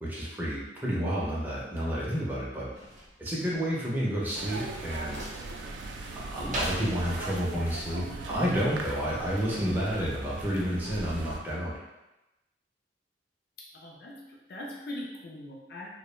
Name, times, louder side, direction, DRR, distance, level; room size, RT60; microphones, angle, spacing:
voice 1, 0.0-2.7 3.2-5.2 6.3-11.7, equal, 10° right, -6 dB, 0.4 m, -30 dB
sound 1, 2.7-8.5, right 1 dB, 40° right, 0.7 m, -41 dB
sound 2, 4.4-11.4, right 3 dB, 75° right, 0.3 m, -39 dB
voice 2, 13.6-15.9, left 1 dB, 55° left, -2 dB, 0.4 m, -41 dB
2.2 x 2.0 x 3.0 m, 0.98 s
head